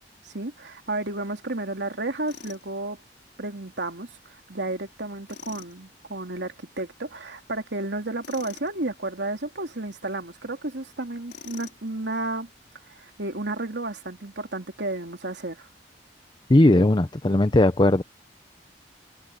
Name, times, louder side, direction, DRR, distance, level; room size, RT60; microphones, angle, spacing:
voice 1, 0.2-3.0 3.4-12.5 12.9-15.7, right 2 dB, 90° right, 2.8 m, -32 dB
Tools, 2.3-2.6 5.3-5.7 8.2-8.7 11.3-11.9, left 6 dB, 70° left, 5.2 m, -44 dB
voice 2, 16.5-18.0, left 1 dB, 25° left, 0.7 m, -18 dB
head